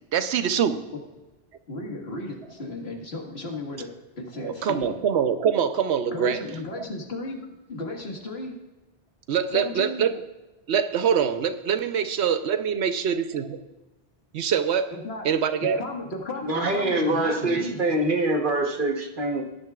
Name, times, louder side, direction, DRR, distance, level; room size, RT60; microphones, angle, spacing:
voice 1, 0.1-0.8 4.4-6.4 9.3-10.2 10.7-13.4 14.3-14.9 15.2-15.8, right 7 dB, 90° right, 10 dB, 1.0 m, -24 dB
voice 2, 1.7-5.0 6.1-8.5 9.5-10.1 14.9-15.3 15.6-17.9, left 2 dB, 70° left, 1 dB, 2.0 m, -35 dB
voice 3, 16.4-19.4, right 2 dB, 50° right, 3 dB, 1.3 m, -24 dB
17.0 x 10.5 x 2.4 m, 1.1 s
omnidirectional pair, 1.1 m